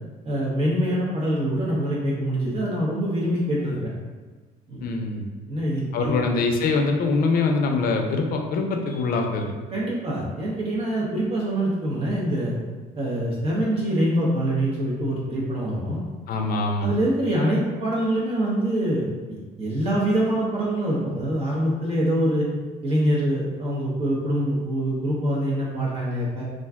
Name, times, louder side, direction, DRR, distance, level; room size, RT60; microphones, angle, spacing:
voice 1, 0.2-3.9 4.7-4.9 5.5-6.2 9.7-12.5 13.0-16.0 16.8-22.5 22.8-26.4, right 1 dB, 35° right, -5 dB, 0.7 m, -24 dB
voice 2, 4.8-5.3 5.9-9.5 16.3-16.9, left 3 dB, 60° left, 3 dB, 0.5 m, -23 dB
2.4 x 2.2 x 3.5 m, 1.3 s
cardioid pair, 110°, 17 cm